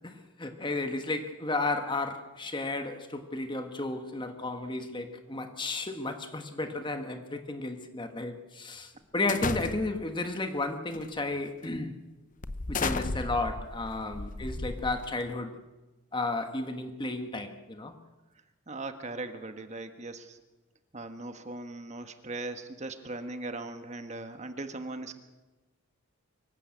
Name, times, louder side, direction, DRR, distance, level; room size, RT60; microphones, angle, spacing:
voice 1, 0.4-12.0 12.7-15.6 16.1-17.9, left 2 dB, 20° left, 7 dB, 1.3 m, -33 dB
sound 1, 9.3-10.1 10.9-11.2 11.6-11.8 12.4-15.3, left 3 dB, 40° left, 0.7 m, -34 dB
voice 2, 18.7-20.4 20.9-25.1, right 2 dB, 35° right, 8 dB, 1.4 m, -39 dB
24.5 x 15.5 x 8.5 m, 1.1 s
head